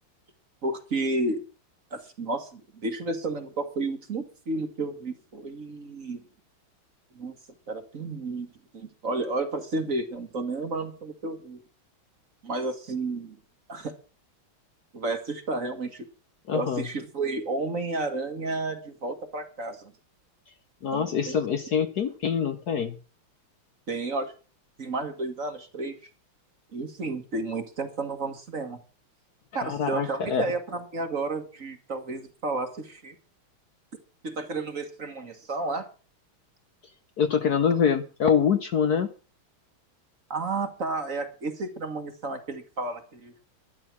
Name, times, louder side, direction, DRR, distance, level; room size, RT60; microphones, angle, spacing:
voice 1, 0.6-1.4 1.9-6.2 7.2-7.4 7.7-11.6 12.4-13.4 13.7-13.9 14.9-16.1 16.5-19.9 20.9-21.4 23.9-24.3 24.8-26.0 26.7-28.8 29.5-33.2 34.2-35.9 40.3-43.3, right 3 dB, 40° right, 7 dB, 1.8 m, -32 dB
voice 2, 16.5-16.9 20.8-23.0 29.5-30.4 37.2-39.1, left 7 dB, 55° left, 9 dB, 1.2 m, -25 dB
12.0 x 11.5 x 6.0 m, 0.36 s
omnidirectional pair, 2.3 m